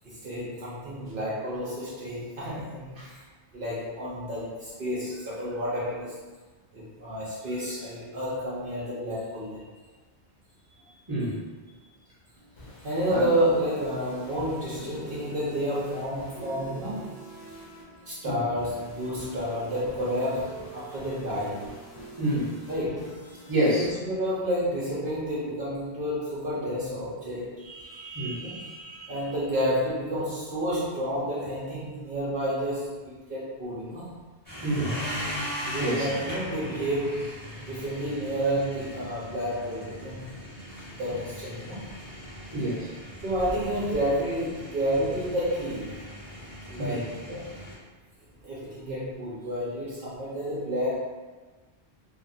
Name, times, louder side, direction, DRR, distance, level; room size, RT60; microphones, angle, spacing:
voice 1, 0.0-3.2 3.5-6.2 6.7-9.6 10.8-11.0 11.7-11.8 12.8-17.1 18.1-21.8 22.7-23.4 23.7-34.1 35.6-40.4 41.0-41.9 43.2-46.0 46.6-47.5 48.4-51.0, equal, 60° right, -8 dB, 0.8 m, -30 dB
voice 2, 11.1-11.4 13.1-13.3 18.2-18.4 22.2-22.5 23.5-23.9 28.1-28.4 34.6-35.0 35.8-36.0 42.5-42.9 46.8-47.1, right 1 dB, 25° right, -8 dB, 0.8 m, -27 dB
sound 1, 12.4-25.2, right 1 dB, 45° left, 0.5 m, -45 dB
sound 2, 34.5-47.7, equal, 10° left, 0.9 m, -39 dB
2.8 x 2.3 x 2.6 m, 1.3 s
omnidirectional pair, 1.1 m